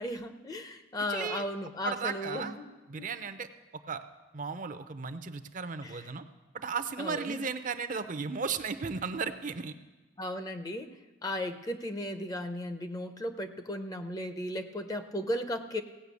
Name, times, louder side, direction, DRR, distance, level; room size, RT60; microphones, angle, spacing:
voice 1, 0.0-2.7 3.0-3.1 5.8-6.0 7.0-7.4 10.2-11.0 11.2-15.8, left 1 dB, 20° left, 8 dB, 0.6 m, -35 dB
voice 2, 1.1-1.4 1.8-2.5 2.9-4.0 4.3-6.2 6.5-9.7, right 5 dB, 40° right, 10 dB, 0.6 m, -35 dB
17.0 x 5.7 x 8.3 m, 1.1 s
head